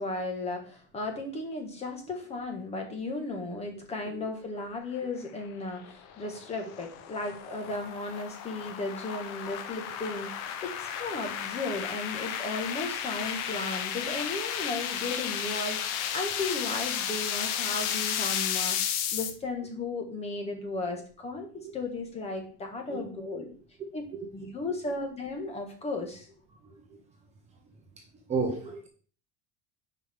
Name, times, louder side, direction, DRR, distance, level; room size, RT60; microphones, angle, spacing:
voice 1, 0.0-18.8 19.1-23.5 23.9-24.0 24.3-26.3, left 2 dB, 20° left, 3 dB, 1.5 m, -35 dB
sound 1, 5.4-19.3, left 9 dB, 55° left, 0.9 m, -33 dB
voice 2, 26.6-27.0 28.3-28.9, right 4 dB, 20° right, 2 dB, 1.0 m, -34 dB
10.0 x 4.9 x 3.6 m, 0.42 s
cardioid pair, 180°, 31 cm